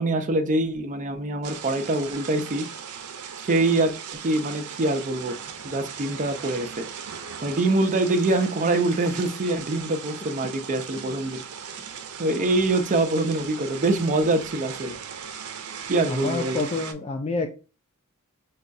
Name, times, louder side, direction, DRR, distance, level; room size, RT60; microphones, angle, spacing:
voice 1, 0.0-2.7 3.4-3.9 4.2-5.4 5.6-6.8 7.4-11.4 12.2-14.9 15.9-16.6, right 2 dB, 35° right, 6 dB, 0.5 m, -24 dB
sound 1, 1.4-16.9, right 7 dB, 90° right, 0.5 m, -38 dB
voice 2, 16.1-17.5, left 3 dB, 30° left, 4 dB, 0.3 m, -28 dB
4.1 x 2.3 x 2.5 m, 0.32 s
head